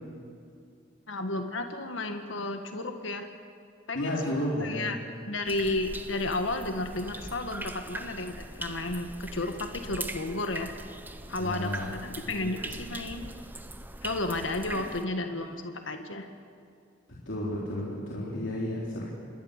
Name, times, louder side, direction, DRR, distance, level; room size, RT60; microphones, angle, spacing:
voice 1, 1.1-3.3 3.9-5.0 5.3-10.7 11.3-13.3 14.0-16.3, left 2 dB, 90° left, 6 dB, 1.6 m, -33 dB
voice 2, 3.9-4.9 11.4-11.9 12.3-12.5 17.3-19.0, left 1 dB, 70° left, -5 dB, 3.7 m, -32 dB
sound 1, 5.5-15.0, right 2 dB, 10° right, 0.8 m, -41 dB
27.5 x 21.5 x 6.6 m, 2.4 s
head